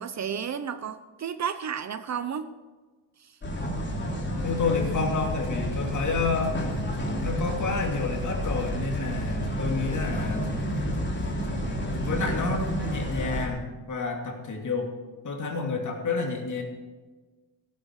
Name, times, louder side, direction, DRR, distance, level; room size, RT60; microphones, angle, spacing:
voice 1, 0.0-2.5, right 7 dB, 40° right, 11 dB, 0.7 m, -32 dB
sound 1, 3.4-13.5, equal, 25° left, 3.2 m, -30 dB
voice 2, 4.4-6.6 7.2-10.5 12.0-14.9 15.2-16.6, left 4 dB, 45° left, 2 dB, 2.9 m, -29 dB
sound 2, 4.6-13.2, left 3 dB, 85° left, 3.7 m, -46 dB
sound 3, 10.1-11.7 11.9-12.0, equal, 5° left, 2.4 m, -46 dB
14.5 x 13.0 x 4.8 m, 1.3 s
cardioid pair, 130°, 43 cm